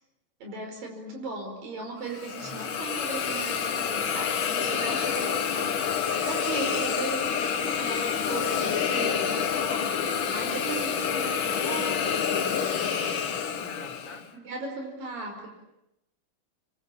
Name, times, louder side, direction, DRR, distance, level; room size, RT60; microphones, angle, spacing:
voice 1, 0.4-10.0 10.2-11.9 14.3-15.5, right 3 dB, 85° right, 3 dB, 6.7 m, -37 dB
Hiss, 2.1-14.2, left 7 dB, 55° left, 1.5 m, -28 dB
voice 2, 2.4-2.7 11.1-11.4 12.7-14.3, left 1 dB, 10° left, -2 dB, 5.6 m, -45 dB
26.5 x 24.5 x 8.7 m, 0.88 s
omnidirectional pair, 3.9 m